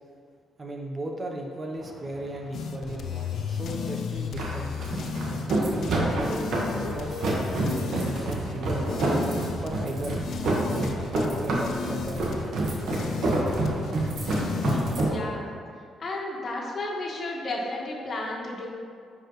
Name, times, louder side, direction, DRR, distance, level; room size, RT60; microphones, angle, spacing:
voice 1, 0.6-8.9 9.6-10.2 10.5-11.0 11.4-13.2, right 1 dB, 30° right, 1 dB, 0.9 m, -36 dB
sound 1, 1.8-15.1, right 1 dB, 70° right, 1.5 m, -28 dB
sound 2, 2.5-15.1, left 6 dB, 65° left, 0.5 m, -35 dB
voice 2, 14.6-15.5 16.0-18.7, left 2 dB, 45° left, -2 dB, 1.5 m, -33 dB
9.9 x 4.8 x 3.1 m, 2.2 s
cardioid pair, 90°, 0 cm